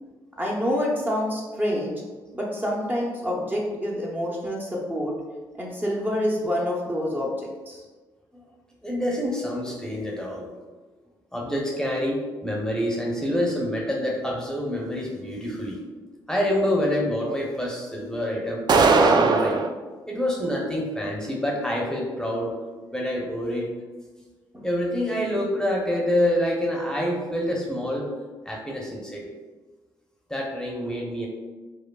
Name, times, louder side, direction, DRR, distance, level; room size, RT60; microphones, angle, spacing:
voice 1, 0.4-2.0 2.3-5.1 5.6-7.8 24.5-24.6, equal, 20° right, -3 dB, 0.8 m, -27 dB
voice 2, 8.8-10.5 11.3-15.8 16.3-18.7 19.0-19.7 20.1-22.6 22.9-23.7 24.6-28.1 28.4-29.3 30.3-31.3, left 1 dB, 5° left, -2 dB, 0.9 m, -27 dB
sound 1, 18.7-19.7, right 3 dB, 50° right, 0.3 m, -18 dB
4.9 x 2.2 x 2.3 m, 1.3 s
supercardioid pair, 50°, 9 cm